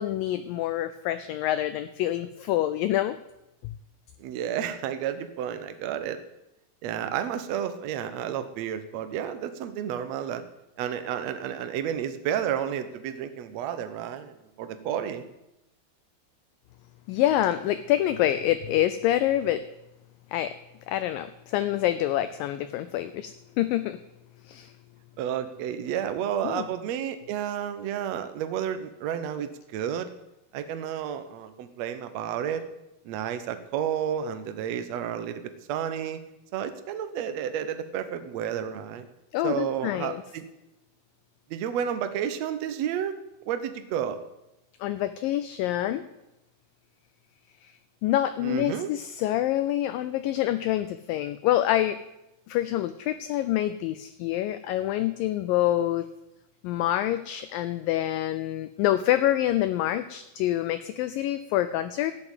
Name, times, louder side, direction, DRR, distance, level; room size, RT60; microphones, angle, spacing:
voice 1, 0.0-3.2 17.1-19.6 20.3-20.5 20.9-24.0 24.4-24.7 26.4-26.7 39.3-40.2 44.8-46.0 48.0-52.0 52.5-56.1 56.6-62.1, left 13 dB, 80° left, 11 dB, 2.1 m, -26 dB
voice 2, 4.2-6.2 6.8-10.4 10.8-15.2 25.2-30.1 30.5-32.7 33.0-35.4 35.7-36.2 36.5-39.1 39.4-40.5 41.5-43.1 43.4-44.2 48.4-48.9, right 9 dB, 70° right, 10 dB, 1.6 m, -31 dB
13.5 x 7.9 x 9.1 m, 0.91 s
omnidirectional pair, 4.5 m